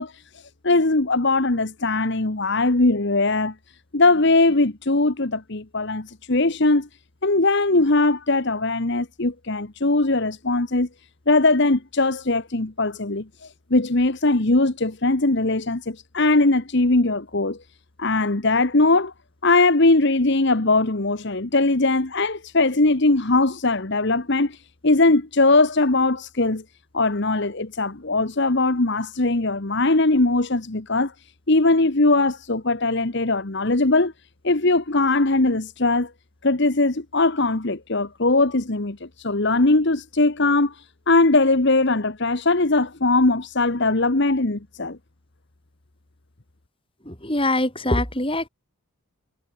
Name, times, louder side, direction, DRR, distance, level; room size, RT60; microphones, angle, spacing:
voice 1, 0.0-3.5 3.9-6.9 7.2-10.9 11.3-17.6 18.0-19.1 19.4-26.6 26.9-31.1 31.5-34.1 34.4-36.1 36.4-45.0, left 2 dB, 50° left, 1.3 m, -20 dB
voice 2, 47.0-48.5, left 1 dB, 25° left, 6.7 m, -23 dB
head